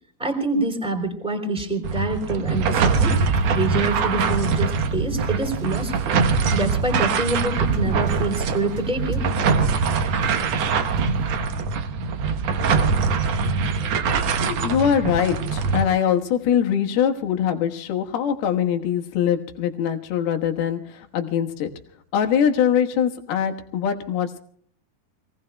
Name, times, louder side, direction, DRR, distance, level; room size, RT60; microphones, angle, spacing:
voice 1, 0.2-3.2 3.5-6.1 6.5-9.3, right 2 dB, ahead, 3 dB, 2.7 m, -26 dB
sound 1, 1.8-15.9, right 5 dB, 75° right, 1.5 m, -23 dB
Wind / Boat Water vehicle, 2.7-11.4, right 2 dB, 40° right, 2.5 m, -40 dB
voice 2, 14.0-21.7 22.1-24.4, left 8 dB, 75° left, 4 dB, 3.3 m, -23 dB
27.0 x 19.0 x 2.2 m, 0.62 s
omnidirectional pair, 4.6 m